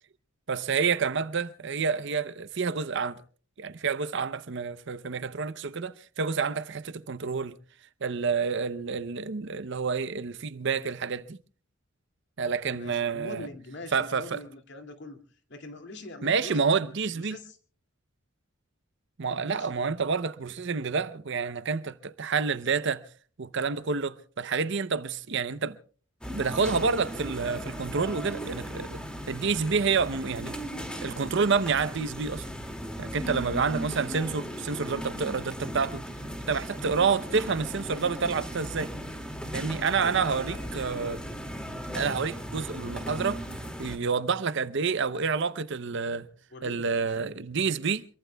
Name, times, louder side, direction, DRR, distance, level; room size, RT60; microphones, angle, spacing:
voice 1, 0.5-3.2 3.6-7.6 8.0-11.4 12.4-13.5 13.9-14.4 16.2-17.4 19.2-23.1 23.4-25.8 26.3-29.0 29.3-30.6 31.0-32.4 33.0-36.1 36.5-38.9 39.5-41.2 41.9-43.4 43.8-46.3 46.6-48.1, right 5 dB, 60° right, 0.7 m, -28 dB
voice 2, 12.6-15.2 15.5-16.8 17.1-17.6 19.4-19.9 40.0-40.9 46.5-47.1, left 2 dB, 55° left, 2.4 m, -44 dB
sound 1, 26.2-44.0, equal, 5° left, 2.3 m, -37 dB
27.0 x 23.0 x 2.3 m
head